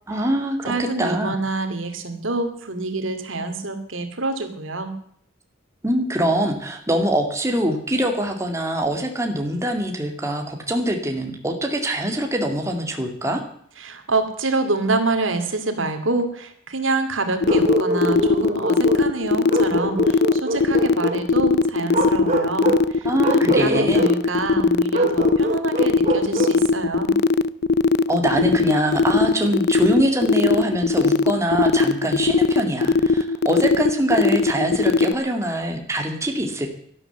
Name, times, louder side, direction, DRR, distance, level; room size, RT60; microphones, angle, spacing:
voice 1, 0.1-0.7 1.0-1.4 5.8-13.4 23.0-24.0 28.1-36.7, right 1 dB, 15° right, 3 dB, 2.3 m, -23 dB
voice 2, 0.6-4.9 13.8-27.2, right 3 dB, 75° right, 7 dB, 2.4 m, -26 dB
sound 1, 17.4-35.1, left 4 dB, 55° left, 0.6 m, -18 dB
Bark, 17.4-19.1 19.5-21.2 21.9-22.9 23.2-24.2 24.9-26.6, right 1 dB, 35° right, 2.5 m, -24 dB
12.0 x 12.0 x 8.0 m, 0.66 s
head